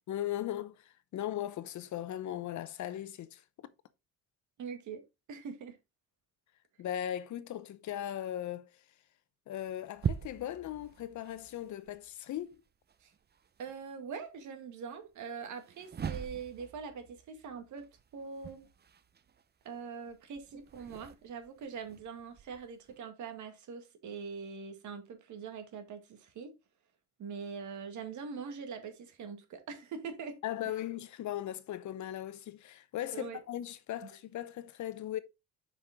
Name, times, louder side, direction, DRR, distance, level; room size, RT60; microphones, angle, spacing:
voice 1, 0.1-3.4 6.8-8.7 9.5-12.6 30.4-35.2, left 12 dB, 70° left, 0.9 m, -38 dB
voice 2, 4.6-5.8 13.0-13.1 13.6-17.9 18.1-18.7 19.6-26.5 27.2-30.4 33.1-33.4 34.0-34.1, right 6 dB, 75° right, 2.1 m, -43 dB
sound 1, 9.5-13.8 15.5-23.0, right 7 dB, 35° right, 0.7 m, -43 dB
7.2 x 5.6 x 3.6 m
cardioid pair, 90°, 30 cm